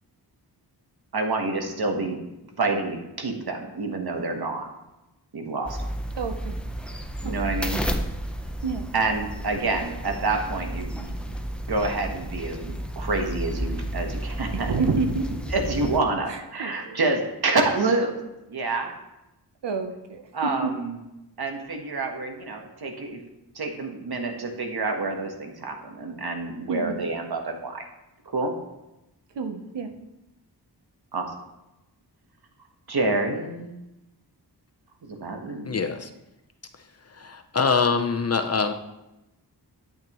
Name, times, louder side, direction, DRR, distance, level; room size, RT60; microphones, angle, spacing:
voice 1, 1.1-2.2 2.6-4.7 5.3-5.8 7.2-7.8 8.9-11.1 11.7-15.0 15.5-18.2 18.5-18.9 20.3-21.0 21.4-23.2 23.5-27.8 28.3-28.5 31.1-31.3 32.9-33.7 35.1-35.8, right 3 dB, 60° right, 3 dB, 1.4 m, -28 dB
sound 1, 5.7-16.0, equal, ahead, 0.7 m, -32 dB
voice 2, 6.2-6.5 7.2-7.3 8.6-8.9 14.5-15.3 16.3-17.0 19.6-20.7 26.7-27.0 29.4-29.9, right 4 dB, 85° right, 6 dB, 0.9 m, -29 dB
voice 3, 35.6-36.1 37.1-38.7, left 5 dB, 35° left, 7 dB, 0.6 m, -24 dB
8.8 x 8.7 x 3.0 m, 0.95 s
wide cardioid pair, 80°, 42 cm